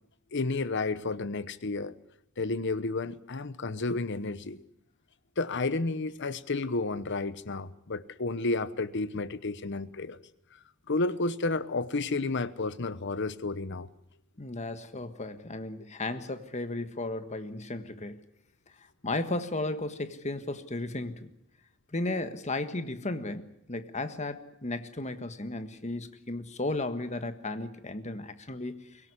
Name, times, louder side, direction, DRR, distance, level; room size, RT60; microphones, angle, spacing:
voice 1, 0.3-1.9 2.4-4.6 5.4-10.2 10.9-13.9, left 3 dB, 55° left, 16 dB, 1.0 m, -31 dB
voice 2, 14.4-18.2 19.0-21.3 21.9-28.9, left 2 dB, 35° left, 9 dB, 1.5 m, -34 dB
24.0 x 17.5 x 9.8 m, 0.78 s
head